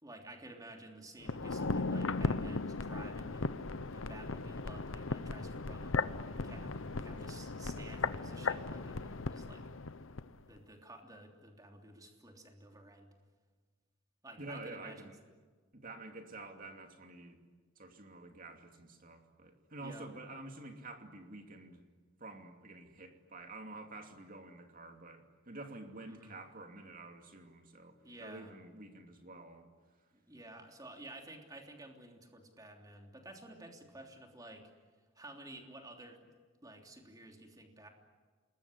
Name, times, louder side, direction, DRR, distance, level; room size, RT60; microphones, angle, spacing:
voice 1, 0.0-9.6 10.5-13.1 14.2-15.1 19.8-20.1 26.1-26.4 28.0-28.5 30.1-34.7 35.1-36.2 36.6-37.9, right 2 dB, 20° right, 2 dB, 3.3 m, -52 dB
sound 1, 1.2-10.3 10.6-10.7, left 3 dB, 75° left, 0.9 m, -37 dB
voice 2, 14.4-15.2 15.7-17.4 17.8-21.8 22.2-29.7, right 2 dB, 45° right, 4 dB, 2.7 m, -49 dB
28.0 x 21.0 x 10.0 m, 1.4 s
head